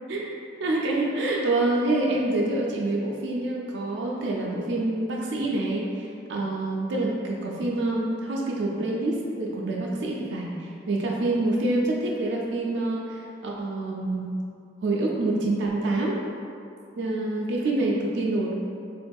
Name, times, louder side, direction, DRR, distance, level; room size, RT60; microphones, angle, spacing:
voice 1, 0.6-14.4 14.8-16.2 17.0-18.5, right 2 dB, 80° right, -3 dB, 0.4 m, -27 dB
4.1 x 2.6 x 2.2 m, 2.4 s
head